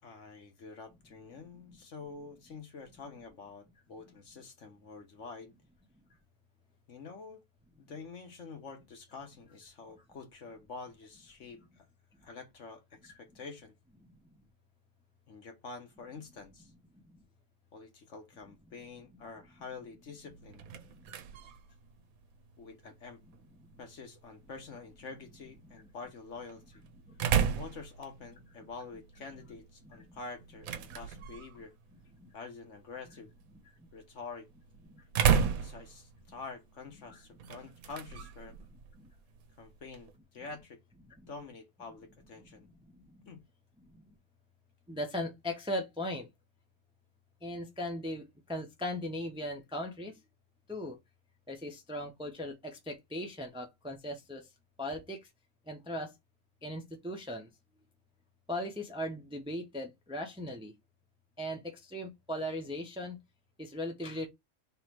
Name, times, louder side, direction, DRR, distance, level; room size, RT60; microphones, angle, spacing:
voice 1, 0.0-5.5 6.9-7.4 7.8-11.9 12.2-13.7 15.3-16.7 17.7-20.7 22.6-23.2 23.8-26.8 27.6-31.7 32.3-33.3 33.9-34.5 35.5-38.5 39.6-40.8 41.3-42.7 43.3-43.4, left 4 dB, 60° left, 1.4 m, -47 dB
sound 1, 20.3-40.2, right 7 dB, 75° right, 1.1 m, -36 dB
voice 2, 44.9-46.3 47.4-50.1 50.7-51.0 51.5-54.4 54.8-55.2 55.7-56.1 56.6-57.5 58.5-60.7 61.4-63.2 63.6-64.3, left 1 dB, 5° right, 0.6 m, -38 dB
3.4 x 3.1 x 4.5 m
omnidirectional pair, 1.5 m